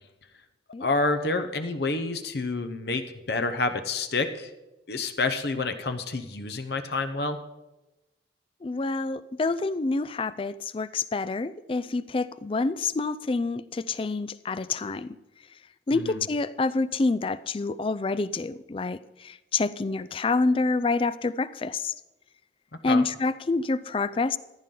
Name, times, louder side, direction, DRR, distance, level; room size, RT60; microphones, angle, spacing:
voice 1, 0.8-3.0 3.3-4.5 4.9-7.4 15.9-16.2 22.9-23.0, left 3 dB, 60° left, 8 dB, 0.8 m, -28 dB
voice 2, 8.6-15.2 15.9-21.9 22.8-24.4, left 3 dB, 30° left, 16 dB, 0.3 m, -27 dB
14.5 x 10.5 x 3.8 m, 1.0 s
head